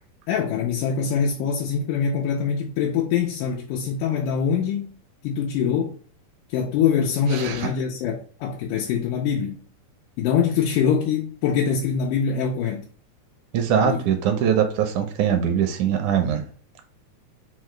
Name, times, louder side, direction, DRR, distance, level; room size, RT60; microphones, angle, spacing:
voice 1, 0.3-4.9 5.2-6.0 6.5-9.6 10.2-12.9 13.8-14.0, left 7 dB, 85° left, 2.2 m, -24 dB
voice 2, 13.5-16.4, right 8 dB, 80° right, 2.0 m, -22 dB
5.5 x 2.1 x 3.1 m
omnidirectional pair, 3.6 m